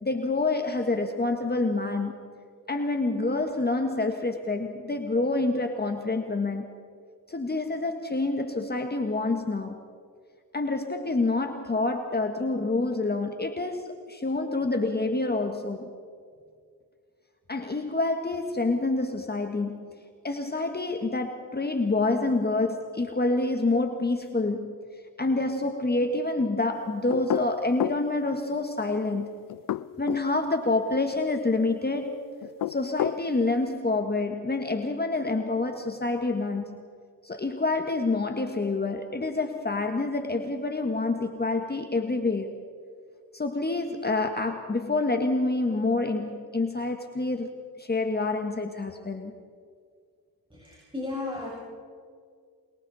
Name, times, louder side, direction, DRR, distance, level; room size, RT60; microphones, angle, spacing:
voice 1, 0.0-2.1 2.7-6.7 7.3-9.8 10.5-15.9 17.5-24.8 25.2-29.3 30.0-32.2 32.7-36.9 37.2-42.6 43.3-47.5 47.8-49.3, left 2 dB, 25° left, 5 dB, 1.7 m, -27 dB
sound 1, 27.1-28.0 29.5-30.3 32.4-33.2, left 13 dB, 55° left, 0.6 m, -29 dB
voice 2, 50.5-51.5, left 3 dB, 15° right, -3 dB, 6.4 m, -34 dB
27.5 x 23.0 x 4.3 m, 2.1 s
cardioid pair, 75°, 40 cm